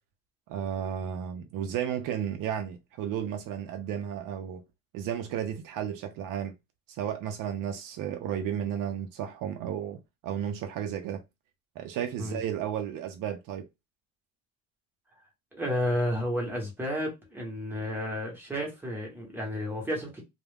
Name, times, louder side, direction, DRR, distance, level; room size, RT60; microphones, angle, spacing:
voice 1, 0.5-4.6 4.9-6.5 6.9-11.2 11.8-13.7, right 9 dB, 75° right, 0.5 m, -33 dB
voice 2, 15.5-20.2, equal, 5° right, 0.9 m, -31 dB
2.3 x 2.1 x 3.3 m
cardioid pair, 155°, 33 cm